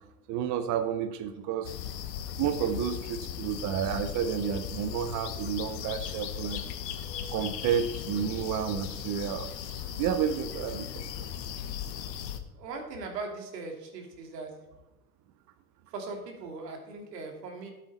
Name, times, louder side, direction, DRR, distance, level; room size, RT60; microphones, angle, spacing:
voice 1, 0.3-1.7 2.4-6.6 7.3-11.3, right 8 dB, 40° right, 9 dB, 0.8 m, -31 dB
sound 1, 1.6-12.4, left 9 dB, 80° left, 1.2 m, -37 dB
voice 2, 12.6-14.5 15.9-17.7, right 3 dB, 80° right, 3 dB, 2.7 m, -39 dB
12.0 x 8.3 x 4.1 m, 1.0 s
hypercardioid pair, 100°, 49 cm